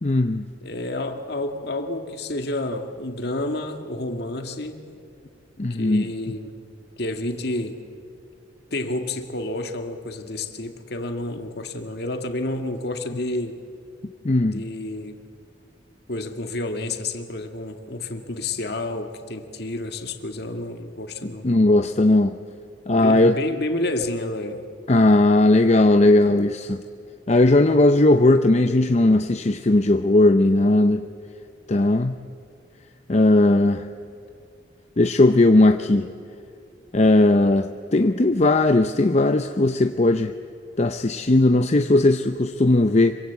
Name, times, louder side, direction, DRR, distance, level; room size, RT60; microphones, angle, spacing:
voice 1, 0.0-0.4 5.6-6.3 14.2-14.6 21.4-22.4 22.9-23.4 24.9-26.8 27.3-31.1 31.7-32.1 33.1-33.9 35.0-36.1 36.9-40.3 40.8-43.2, left 2 dB, 35° left, 7 dB, 0.7 m, -18 dB
voice 2, 0.6-4.8 5.7-6.6 7.0-7.8 8.7-13.6 14.4-15.2 16.1-21.5 23.0-24.6, left 2 dB, 60° left, 6 dB, 2.0 m, -30 dB
26.0 x 24.0 x 8.2 m, 2.5 s
head